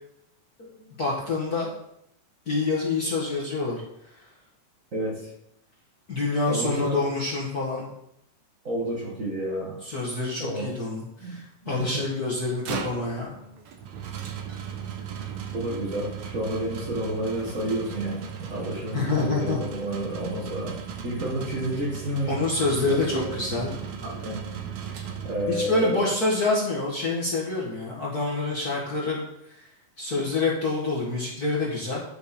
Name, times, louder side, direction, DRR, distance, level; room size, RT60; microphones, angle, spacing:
voice 1, 1.0-1.7 2.4-3.8 6.1-7.9 9.8-13.4 18.9-19.6 22.3-23.7 25.5-29.6 30.0-32.0, left 3 dB, 45° left, -4 dB, 1.3 m, -27 dB
voice 2, 4.9-5.3 6.5-7.0 8.6-9.8 10.4-10.7 11.2-12.1 15.5-20.8 21.0-22.4 22.7-23.3 24.0-24.4 25.2-26.1, right 1 dB, 35° right, -3 dB, 1.3 m, -30 dB
sound 1, 12.4-25.8, right 7 dB, 65° right, 2.0 m, -37 dB
10.5 x 6.6 x 4.3 m, 0.79 s
omnidirectional pair, 3.9 m